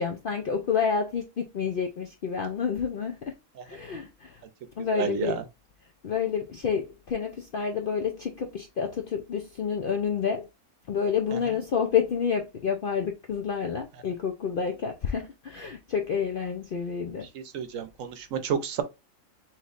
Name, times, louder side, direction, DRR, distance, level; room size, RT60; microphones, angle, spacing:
voice 1, 0.0-3.3 3.6-4.4 4.8-5.4 6.0-10.5 10.9-17.3, left 6 dB, 60° left, 0.5 m, -29 dB
voice 2, 4.8-5.4 17.5-18.8, right 7 dB, 70° right, 1.0 m, -30 dB
5.6 x 3.0 x 2.4 m
omnidirectional pair, 1.5 m